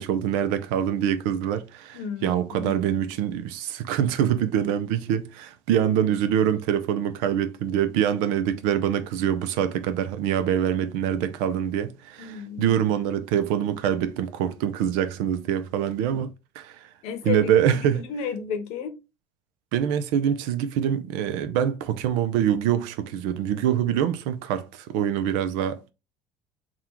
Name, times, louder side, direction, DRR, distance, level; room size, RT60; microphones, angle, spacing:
voice 1, 0.0-16.3 16.6-16.9 17.2-18.0 19.7-25.8, right 9 dB, 80° right, 0.6 m, -25 dB
voice 2, 1.9-2.7 12.2-12.8 17.0-19.0, left 7 dB, 65° left, 0.9 m, -33 dB
3.7 x 2.4 x 4.3 m
cardioid pair, 135°, 12 cm